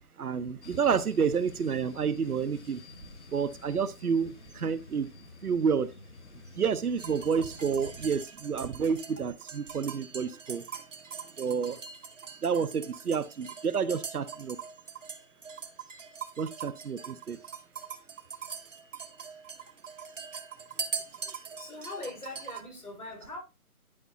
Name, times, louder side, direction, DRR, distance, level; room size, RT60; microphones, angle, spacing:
voice 1, 0.2-2.8 3.3-5.1 5.4-5.9 6.6-10.6 11.4-11.8 12.4-14.6 16.4-17.4, right 6 dB, 85° right, 0.9 m, -29 dB
sound 1, 0.6-8.1, left 3 dB, 50° left, 1.1 m, -50 dB
sound 2, 7.0-22.6, right 6 dB, 55° right, 1.1 m, -42 dB
voice 2, 21.6-23.4, left 2 dB, 85° left, 4.8 m, -41 dB
11.0 x 4.8 x 2.6 m
hypercardioid pair, 170°, 43 cm